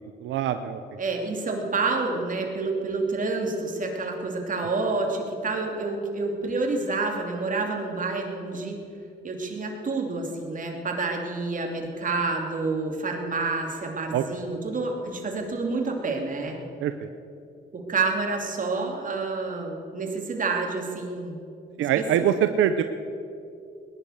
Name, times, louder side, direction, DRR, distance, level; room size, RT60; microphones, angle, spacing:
voice 1, 0.2-0.8 14.1-14.2 16.8-17.1 21.8-22.8, right 10 dB, 85° right, 9 dB, 0.7 m, -23 dB
voice 2, 1.0-8.8 9.2-16.6 17.7-21.4 22.0-22.1, right 3 dB, 40° right, 2 dB, 3.0 m, -28 dB
19.5 x 11.0 x 6.6 m, 2.6 s
cardioid pair, 90°, 20 cm